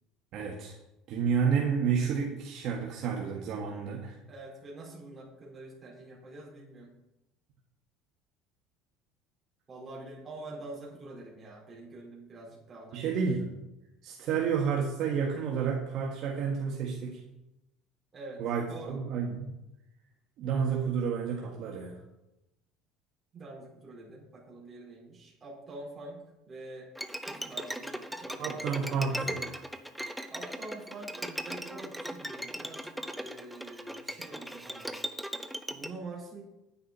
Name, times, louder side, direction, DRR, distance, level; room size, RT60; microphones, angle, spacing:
voice 1, 0.3-0.7 1.1-4.2 12.9-13.6 14.0-17.2 18.4-19.6 20.4-22.0 28.4-29.6, right 6 dB, 50° right, -2 dB, 1.7 m, -30 dB
voice 2, 4.3-6.9 9.7-13.2 18.1-18.4 18.7-19.0 23.3-26.9 27.2-28.6 30.3-34.9 35.7-36.5, right 2 dB, 20° right, -4 dB, 4.4 m, -46 dB
Bowed string instrument, 26.9-35.9, right 1 dB, ahead, 0.7 m, -38 dB
10.0 x 9.9 x 4.3 m, 0.92 s
cardioid pair, 140°, 0 cm